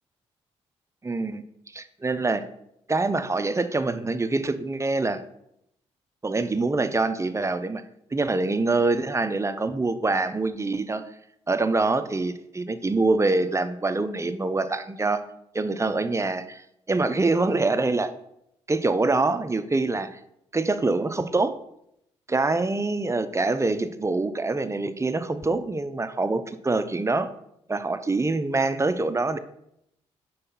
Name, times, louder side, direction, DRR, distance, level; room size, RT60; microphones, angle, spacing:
voice 1, 1.0-1.4 1.7-2.4 2.9-5.2 6.2-7.8 8.1-11.0 11.5-15.2 15.5-16.6 16.9-18.1 18.7-20.2 20.5-21.5 22.3-27.3 27.7-29.4, right 3 dB, 20° right, 11 dB, 0.7 m, -25 dB
5.5 x 4.7 x 5.4 m, 0.77 s
hypercardioid pair, 45°, 13 cm